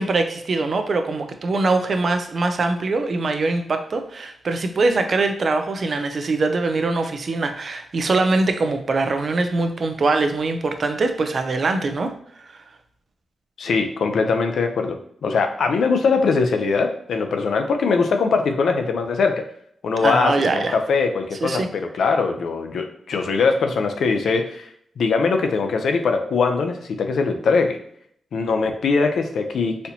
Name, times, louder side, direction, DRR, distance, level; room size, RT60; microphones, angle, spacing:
voice 1, 0.0-12.1 20.0-20.8 21.4-21.7, right 3 dB, 45° right, 7 dB, 0.4 m, -22 dB
voice 2, 13.6-19.4 19.8-24.7 25.0-27.8 28.3-29.9, left 4 dB, 75° left, 5 dB, 0.5 m, -21 dB
4.2 x 2.7 x 2.8 m, 0.67 s
wide cardioid pair, 135°, 0 cm